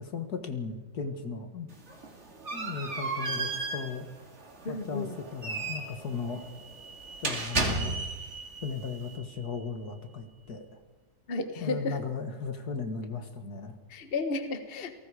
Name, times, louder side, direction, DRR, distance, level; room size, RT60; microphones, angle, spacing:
voice 1, 0.0-1.7 2.5-4.1 4.7-6.5 7.2-8.0 8.6-10.8 11.6-13.8, left 5 dB, 60° left, 7 dB, 2.2 m, -36 dB
sound 1, 1.7-8.3, right 3 dB, 40° right, 2.8 m, -34 dB
voice 2, 4.6-5.1 11.3-12.0 13.9-14.9, left 3 dB, 35° left, 8 dB, 1.4 m, -32 dB
sound 2, 5.4-10.6, right 4 dB, 85° right, 2.3 m, -45 dB
29.5 x 18.5 x 5.0 m, 1.3 s
omnidirectional pair, 1.9 m